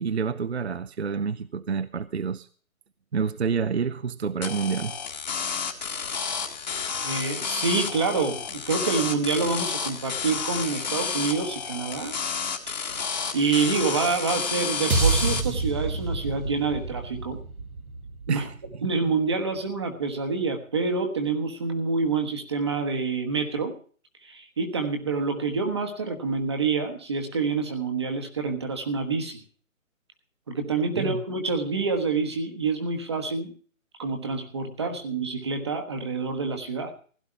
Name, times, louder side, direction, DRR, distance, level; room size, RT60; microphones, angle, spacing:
voice 1, 0.0-2.5 3.1-5.0 18.3-18.9 31.0-31.2 34.8-34.9, right 6 dB, 50° right, 15 dB, 0.7 m, -28 dB
sound 1, 4.4-15.4, left 6 dB, 30° left, 1.8 m, -31 dB
voice 2, 7.0-12.1 12.7-12.9 13.3-17.4 18.3-18.5 18.8-23.7 24.2-29.4 30.5-33.5 34.0-36.9, right 4 dB, 20° right, 5 dB, 1.3 m, -27 dB
sound 2, 14.9-19.2, right 3 dB, 85° right, 2.2 m, -28 dB
16.5 x 11.5 x 4.5 m, 0.43 s
hypercardioid pair, 170°, 42 cm